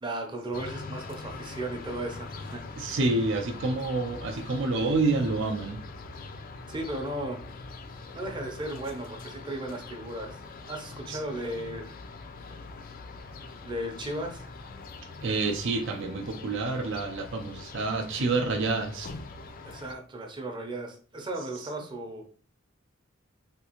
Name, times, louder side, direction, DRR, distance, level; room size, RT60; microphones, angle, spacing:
voice 1, 0.0-2.6 6.7-7.4 8.1-10.4 10.7-11.9 13.6-14.5 19.6-22.2, right 1 dB, 25° right, 0.6 m, -35 dB
sound 1, 0.5-19.9, left 3 dB, 45° left, 0.3 m, -43 dB
voice 2, 2.8-5.8 11.1-11.2 15.2-19.1, right 3 dB, 65° right, 0.5 m, -28 dB
3.5 x 2.4 x 2.9 m
head